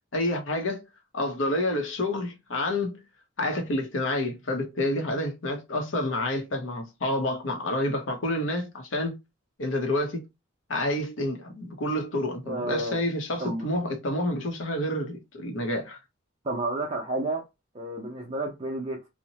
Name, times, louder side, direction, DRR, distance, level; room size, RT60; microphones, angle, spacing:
voice 1, 0.1-0.8 1.1-3.0 3.4-9.2 9.6-10.2 10.7-16.0, left 1 dB, 65° left, 0.8 m, -28 dB
voice 2, 12.4-13.0 13.4-13.7 16.4-17.4 17.7-19.0, right 2 dB, 25° right, 0.5 m, -31 dB
2.8 x 2.1 x 2.8 m
head